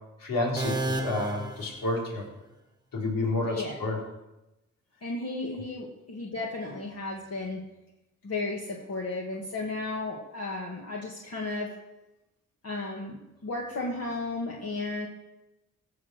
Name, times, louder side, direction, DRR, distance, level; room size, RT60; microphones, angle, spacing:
voice 1, 0.2-2.2 2.9-4.0, left 2 dB, 85° left, -2 dB, 3.9 m, -29 dB
sound 1, 0.6-2.5, right 2 dB, 10° right, 1.4 m, -33 dB
voice 2, 3.4-3.9 5.0-7.6 8.2-11.8 12.6-15.1, left 2 dB, 50° left, -2 dB, 1.9 m, -34 dB
16.5 x 6.3 x 6.4 m, 0.94 s
cardioid pair, 80°, 33 cm